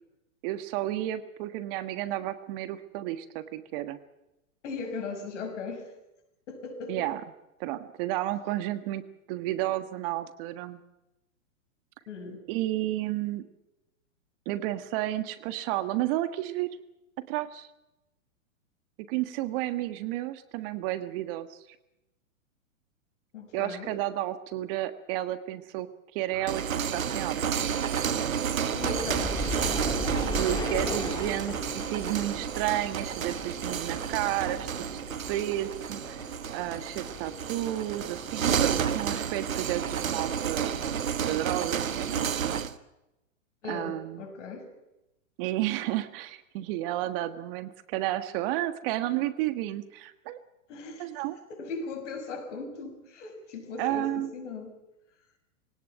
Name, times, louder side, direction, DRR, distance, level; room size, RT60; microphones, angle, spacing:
voice 1, 0.4-4.0 6.9-7.2 7.6-10.8 12.5-13.4 14.4-16.8 17.3-17.7 19.1-21.6 23.5-27.7 30.4-31.6 31.9-35.0 35.3-36.2 36.5-40.8 41.2-42.6 43.7-44.2 45.4-50.4 51.0-51.4 53.8-54.3, right 14 dB, 45° right, 11 dB, 1.6 m, -32 dB
voice 2, 4.6-5.9 6.5-7.1 12.1-12.4 23.3-24.0 28.7-29.6 30.6-30.7 31.5-31.6 43.6-44.7 50.7-51.1 51.5-54.7, left 4 dB, 65° left, 7 dB, 6.0 m, -38 dB
sound 1, 26.3-42.8, right 8 dB, 85° right, 1.4 m, -31 dB
sound 2, 28.8-40.0 40.3-41.4 41.8-41.9, left 2 dB, 10° left, 2.6 m, -39 dB
22.0 x 18.0 x 9.1 m, 0.94 s
hypercardioid pair, 120°, 40 cm